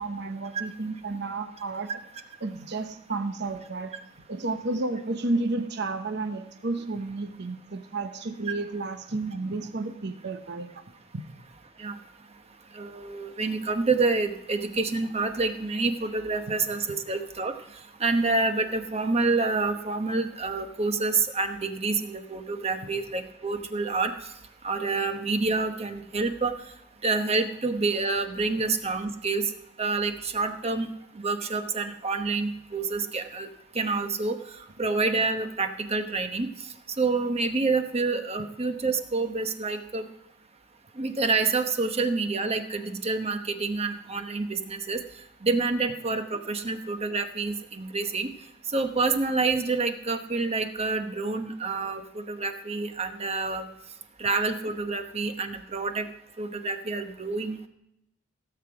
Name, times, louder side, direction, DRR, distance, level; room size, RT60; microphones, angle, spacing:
voice 1, 0.0-1.9 2.4-3.9 4.3-10.7, right 2 dB, 60° right, 8 dB, 0.9 m, -31 dB
voice 2, 12.8-17.5 18.0-24.1 24.6-26.5 27.0-29.4 29.8-30.9 31.1-33.5 33.7-34.4 34.8-36.5 37.0-40.1 41.0-45.0 45.4-48.3 48.7-53.7 54.2-56.1 56.4-57.7, right 3 dB, 30° right, 7 dB, 1.0 m, -27 dB
16.5 x 7.9 x 4.8 m, 0.83 s
head